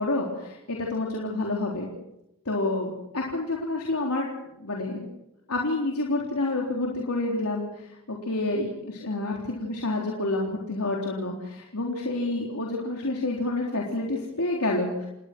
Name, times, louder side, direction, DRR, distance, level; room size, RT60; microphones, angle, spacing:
voice 1, 0.0-1.9 2.5-5.1 5.5-15.1, left 2 dB, 90° left, -2 dB, 3.8 m, -29 dB
29.5 x 19.0 x 6.2 m, 0.87 s
head